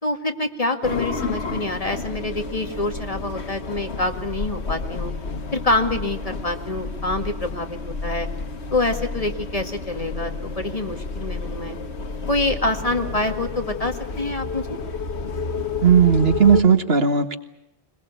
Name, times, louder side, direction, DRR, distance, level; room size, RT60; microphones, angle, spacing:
voice 1, 0.0-5.1 5.5-8.3 8.7-11.8 12.3-14.8, left 2 dB, 35° left, 5 dB, 2.1 m, -26 dB
sound 1, 0.8-16.6, left 4 dB, 90° left, 1.6 m, -30 dB
voice 2, 15.8-17.4, right 7 dB, 65° right, 8 dB, 1.8 m, -16 dB
22.0 x 21.5 x 8.2 m, 0.87 s
omnidirectional pair, 1.1 m